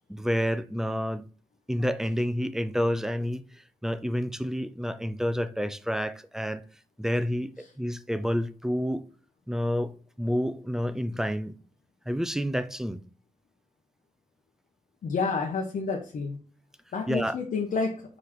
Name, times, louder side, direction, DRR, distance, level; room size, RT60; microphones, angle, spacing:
voice 1, 0.1-1.2 1.7-3.4 3.8-6.6 7.0-7.5 7.8-9.0 9.5-9.9 10.2-11.5 12.1-13.0 17.1-17.4, equal, 5° right, 0.5 m, -29 dB
voice 2, 15.0-16.4 16.9-18.0, left 4 dB, 75° left, 1.1 m, -29 dB
4.9 x 4.2 x 5.9 m
wide cardioid pair, 120°, 14 cm